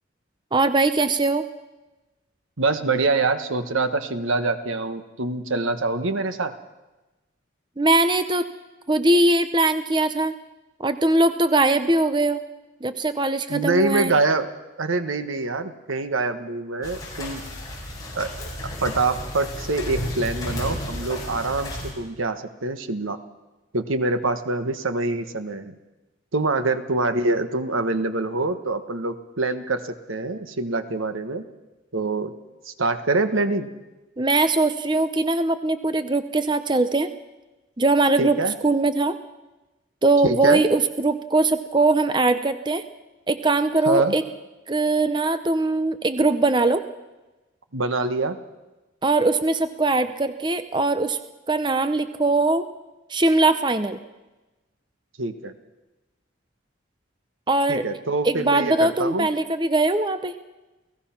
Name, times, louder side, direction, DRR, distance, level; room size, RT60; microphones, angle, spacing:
voice 1, 0.5-1.4 7.8-8.4 8.9-10.4 10.8-12.4 12.8-14.1 34.2-37.1 37.8-38.4 38.6-39.1 40.0-42.8 43.3-44.2 44.7-46.8 49.0-51.2 51.5-52.6 53.1-54.0 57.5-57.8 58.2-60.3, right 2 dB, 25° right, 11 dB, 0.7 m, -21 dB
voice 2, 2.6-6.5 13.5-14.5 14.8-17.4 18.1-18.5 18.8-23.2 23.7-25.7 26.3-31.5 31.9-32.3 32.6-33.7 38.2-38.5 40.2-40.6 43.8-44.1 47.7-48.4 55.2-55.5 57.7-59.3, right 3 dB, 85° right, 10 dB, 1.4 m, -25 dB
sound 1, 16.8-21.9, left 1 dB, 20° left, 5.5 m, -32 dB
29.5 x 17.0 x 5.9 m, 1.1 s
head